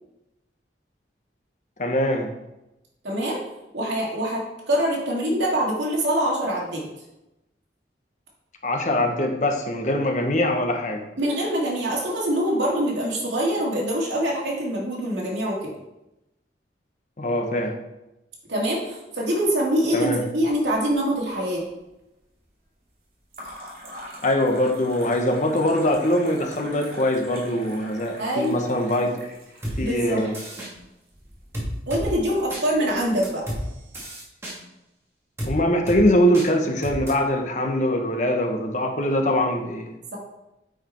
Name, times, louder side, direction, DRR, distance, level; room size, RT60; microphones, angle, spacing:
voice 1, 1.8-2.3 8.6-11.0 17.2-17.8 19.9-20.2 24.2-29.2 29.8-30.3 35.4-39.9, left 1 dB, 45° left, 3 dB, 1.0 m, -22 dB
voice 2, 3.0-3.4 3.7-6.9 11.2-15.7 18.5-21.6 28.2-28.7 29.8-30.2 31.9-33.4, equal, 80° right, -3 dB, 2.6 m, -24 dB
sound 1, 20.2-20.9 21.2-21.8 23.3-34.0, equal, 50° right, 2.7 m, -44 dB
sound 2, 29.6-29.8 30.3-30.7 31.5-32.0 32.5-32.6 33.2-33.6 33.9-34.6 35.4-35.5 35.9-36.0 36.3-36.5 36.8-37.1, equal, 15° right, 2.0 m, -31 dB
9.0 x 4.9 x 4.4 m, 0.93 s
head